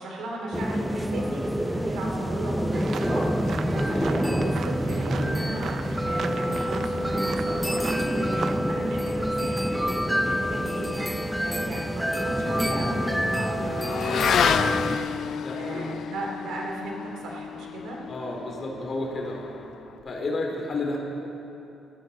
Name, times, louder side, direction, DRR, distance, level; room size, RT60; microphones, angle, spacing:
voice 1, 0.0-18.0, right 1 dB, 80° right, -1 dB, 3.1 m, -35 dB
sound 1, 0.5-15.0, equal, ahead, 0.7 m, -27 dB
sound 2, 2.7-8.6, right 6 dB, 60° right, 0.7 m, -38 dB
voice 2, 3.7-4.0 15.3-16.1 18.1-19.5 20.0-21.0, left 2 dB, 45° left, -1 dB, 2.7 m, -32 dB
Motorcycle / Accelerating revving vroom, 11.3-20.1, left 8 dB, 65° left, 0.3 m, -31 dB
19.0 x 14.0 x 4.1 m, 2.9 s
cardioid pair, 90°, 0 cm